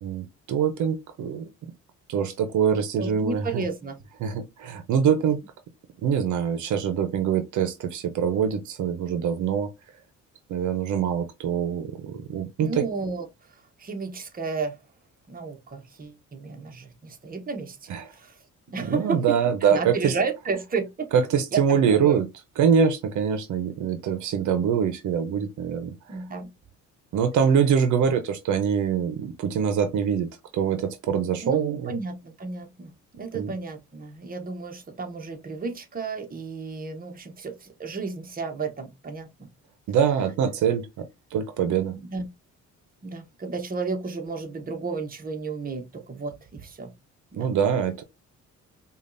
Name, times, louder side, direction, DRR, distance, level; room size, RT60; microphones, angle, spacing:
voice 1, 0.0-1.5 2.1-3.6 4.2-5.4 6.0-9.7 10.5-12.8 17.9-18.1 18.9-20.1 21.1-22.3 22.6-26.2 27.1-30.3 30.5-31.9 33.3-33.5 39.9-42.0 47.3-48.0, right 7 dB, 75° right, 0.7 m, -24 dB
voice 2, 3.0-4.0 12.6-13.3 13.8-14.8 15.3-18.4 18.7-21.1 21.5-22.2 26.1-26.5 31.4-32.9 33.2-39.5 41.9-42.2 43.0-46.9 47.3-47.5, right 4 dB, 30° right, 0.9 m, -32 dB
5.1 x 2.4 x 2.5 m
cardioid pair, 90°, 30 cm